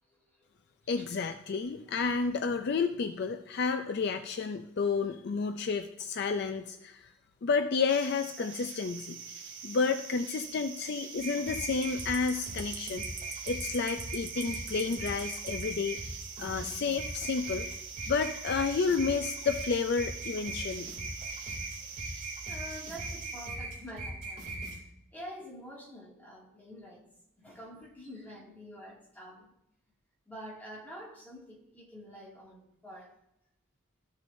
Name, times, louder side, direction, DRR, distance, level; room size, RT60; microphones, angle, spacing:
voice 1, 0.1-0.5 1.0-1.1 8.4-8.5 22.4-24.5 25.1-27.0 27.4-29.5 30.3-32.6 32.8-33.1, equal, 10° left, -5 dB, 2.2 m, -47 dB
voice 2, 0.9-7.1 7.4-9.2 9.6-13.0 13.5-16.0 16.4-17.7 18.1-20.9, left 5 dB, 50° left, 7 dB, 0.4 m, -31 dB
sound 1, 7.9-23.5, right 6 dB, 55° right, 1.3 m, -44 dB
sound 2, 11.2-24.8, right 1 dB, 40° right, 2.5 m, -40 dB
14.0 x 6.5 x 2.6 m, 0.80 s
head